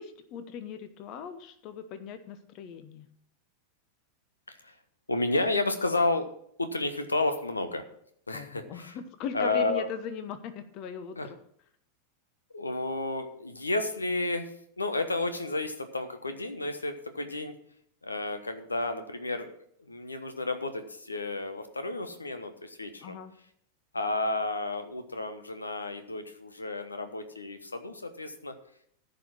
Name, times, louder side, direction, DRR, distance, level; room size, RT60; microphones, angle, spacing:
voice 1, 0.0-3.1 8.3-11.4 23.0-23.3, left 7 dB, 40° left, 11 dB, 1.0 m, -39 dB
voice 2, 5.1-6.3 6.6-7.8 8.3-9.0 9.3-9.9 11.2-11.3 12.5-14.5 14.8-17.5 18.0-19.5 19.9-23.2 23.9-28.5, left 2 dB, 80° left, 9 dB, 1.1 m, -31 dB
14.5 x 5.5 x 6.2 m, 0.66 s
figure-of-eight pair, 90°, 0 cm